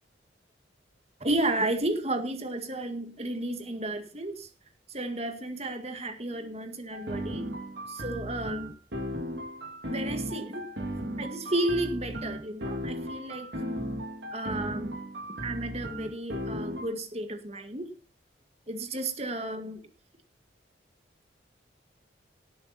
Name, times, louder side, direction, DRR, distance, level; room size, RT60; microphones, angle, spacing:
voice 1, 1.2-4.5 4.9-7.5 7.9-8.7 9.8-10.7 11.2-13.5 14.3-14.9 15.4-17.9 18.7-19.8, right 1 dB, 35° right, 6 dB, 2.0 m, -32 dB
sound 1, 6.9-16.8, equal, 65° right, 2.5 m, -36 dB
18.5 x 8.7 x 4.3 m, 0.35 s
head